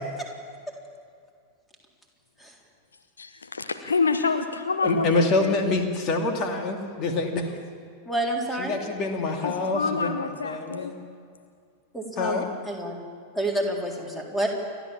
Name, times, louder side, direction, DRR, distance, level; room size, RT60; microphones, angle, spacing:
voice 1, 3.2-5.6 9.4-10.9, left 4 dB, 75° left, 8 dB, 0.9 m, -27 dB
voice 2, 4.8-7.6 8.6-11.0 12.2-12.5, left 3 dB, 35° left, 3 dB, 2.4 m, -26 dB
voice 3, 8.1-8.8 11.9-13.0 13.3-14.5, right 1 dB, 5° left, 0 dB, 3.8 m, -29 dB
29.5 x 12.5 x 7.3 m, 2.2 s
figure-of-eight pair, 90°, 0 cm